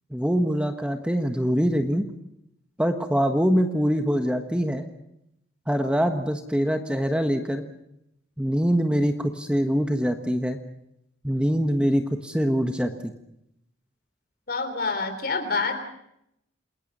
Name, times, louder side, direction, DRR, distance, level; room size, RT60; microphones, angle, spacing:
voice 1, 0.1-2.1 2.8-4.9 5.7-7.6 8.4-10.6 11.2-13.1, equal, 5° right, 6 dB, 1.3 m, -24 dB
voice 2, 14.5-15.8, left 4 dB, 50° left, 8 dB, 3.7 m, -27 dB
28.5 x 21.0 x 5.5 m, 0.78 s
head